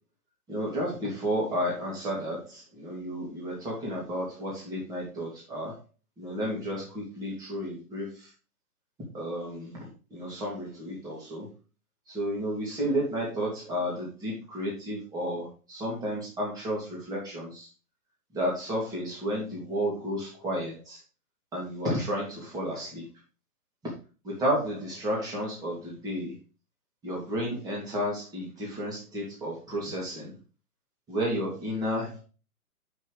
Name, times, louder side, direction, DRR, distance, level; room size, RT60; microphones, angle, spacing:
voice 1, 0.5-5.8 6.2-8.3 9.1-9.8 10.1-11.5 12.1-17.7 18.3-21.0 21.5-23.1 24.2-26.4 27.0-30.4 31.1-32.2, equal, 10° right, -4 dB, 2.7 m, -32 dB
7.4 x 6.3 x 5.0 m, 0.34 s
hypercardioid pair, 155°, 45 cm